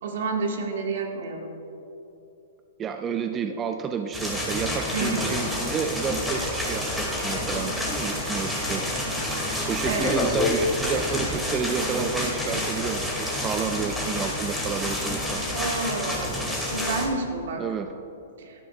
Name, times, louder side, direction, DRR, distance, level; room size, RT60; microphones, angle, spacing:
voice 1, 0.0-1.5 4.9-5.4 9.8-10.1 15.5-16.3 16.6-17.6 18.4-18.5, right 3 dB, 70° right, 1 dB, 1.8 m, -29 dB
voice 2, 2.8-8.8 9.2-9.3 9.7-15.4 17.6-17.9, right 6 dB, 20° right, 7 dB, 0.4 m, -30 dB
sound 1, 4.1-17.1, left 1 dB, ahead, 2.4 m, -29 dB
sound 2, 5.4-8.2 8.6-8.9 9.3-11.0, left 3 dB, 20° left, 1.1 m, -30 dB
15.5 x 12.0 x 2.4 m, 2.9 s
hypercardioid pair, 135°, 0 cm